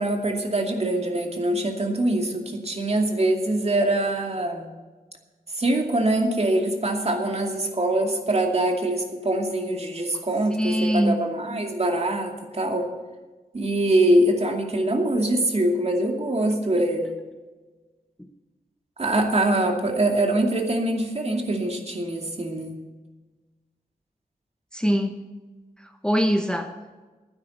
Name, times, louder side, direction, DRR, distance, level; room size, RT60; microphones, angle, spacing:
voice 1, 0.0-4.7 5.5-12.9 13.5-17.2 19.0-22.8, right 1 dB, 40° right, 2 dB, 2.5 m, -23 dB
voice 2, 10.6-11.2 24.7-25.3 25.8-26.7, equal, 5° left, 6 dB, 0.9 m, -23 dB
12.5 x 9.7 x 7.9 m, 1.3 s
cardioid pair, 60°, 16 cm